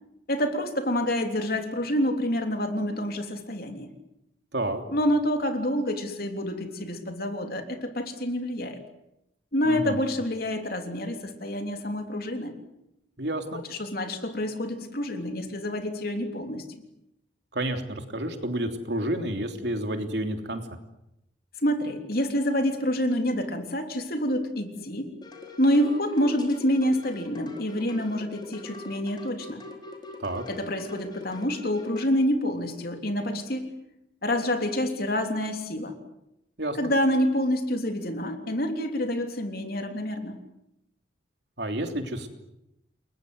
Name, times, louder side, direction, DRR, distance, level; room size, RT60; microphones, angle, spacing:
voice 1, 0.3-3.9 4.9-8.8 9.5-12.5 13.7-16.7 21.6-25.1 25.6-29.6 30.5-33.7 34.2-36.0 36.8-40.4, equal, 55° left, 5 dB, 3.3 m, -27 dB
voice 2, 9.6-10.0 13.2-13.6 17.5-20.6 30.2-30.4 36.6-36.8 41.6-42.3, right 1 dB, 65° right, 5 dB, 3.2 m, -30 dB
sound 1, 25.2-32.1, left 2 dB, 25° left, 4.5 m, -43 dB
29.5 x 22.0 x 8.0 m, 0.85 s
head